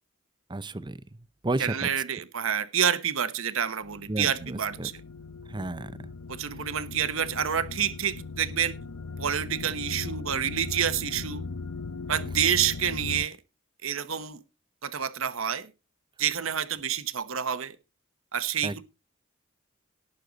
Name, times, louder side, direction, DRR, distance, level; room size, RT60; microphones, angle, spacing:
voice 1, 0.5-1.0 1.4-1.9 4.1-4.9 5.5-5.9 6.6-6.7 18.6-18.8, right 2 dB, 20° right, 0.6 m, -32 dB
voice 2, 1.6-4.9 6.3-8.7 9.2-11.4 12.1-13.4 13.8-14.4 14.8-15.7 16.2-17.8 18.3-18.8, right 8 dB, 70° right, 1.0 m, -28 dB
sound 1, 3.8-13.3, left 4 dB, 70° left, 0.6 m, -38 dB
18.5 x 6.6 x 3.9 m
head